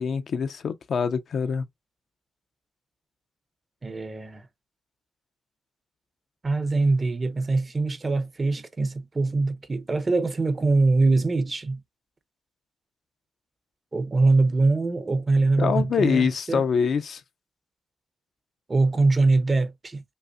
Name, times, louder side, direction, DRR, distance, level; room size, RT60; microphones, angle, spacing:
voice 1, 0.0-1.6 15.6-17.2, left 6 dB, 60° left, 0.5 m, -25 dB
voice 2, 3.8-4.4 6.4-11.8 13.9-16.6 18.7-20.0, right 3 dB, 30° right, 0.6 m, -23 dB
5.3 x 2.0 x 2.4 m
cardioid pair, 95°, 0 cm